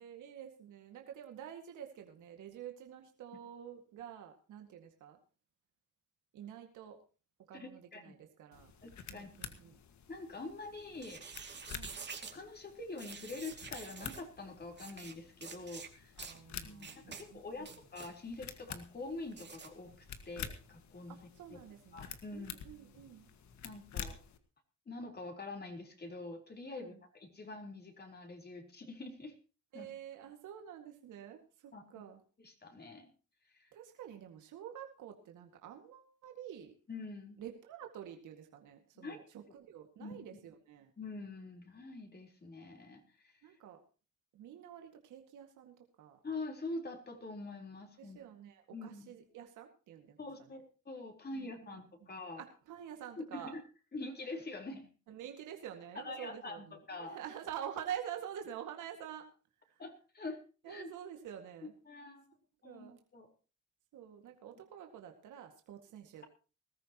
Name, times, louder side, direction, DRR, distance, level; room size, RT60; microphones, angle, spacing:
voice 1, 0.0-5.2 6.3-7.0 7.5-8.7 9.1-9.8 11.7-12.0 16.2-17.7 21.1-23.3 26.8-27.0 29.7-32.2 33.7-36.7 37.4-40.9 43.4-43.8 44.3-46.2 48.0-50.6 51.3-51.8 52.4-53.5 55.1-59.3 59.7-59.8 60.6-61.7 62.6-63.0 63.9-66.2, right 9 dB, 80° right, 4 dB, 2.1 m, -48 dB
voice 2, 7.5-8.1 8.8-9.3 10.1-11.2 11.5-11.6 12.2-16.1 16.6-21.2 21.9-22.5 23.6-24.2 24.9-29.3 29.7-29.9 31.7-32.0 32.4-33.1 33.5-33.7 36.9-37.4 39.0-39.2 40.0-40.2 41.0-43.3 46.2-48.2 48.7-49.1 50.2-52.4 53.2-53.6 53.9-54.9 56.0-57.2 59.8-60.4 60.7-60.9 61.9-62.2 62.6-63.3, left 3 dB, 30° left, 3 dB, 4.0 m, -45 dB
sound 1, 8.5-24.4, left 8 dB, 70° left, 1.8 m, -49 dB
sound 2, 10.9-12.4 13.0-14.2 14.8-15.1 15.4-15.9 16.2-16.4 16.8-17.2 17.6-18.1 19.3-19.7, right 5 dB, 35° right, 2.4 m, -48 dB
20.5 x 14.0 x 3.0 m, 0.35 s
cardioid pair, 90°, 30 cm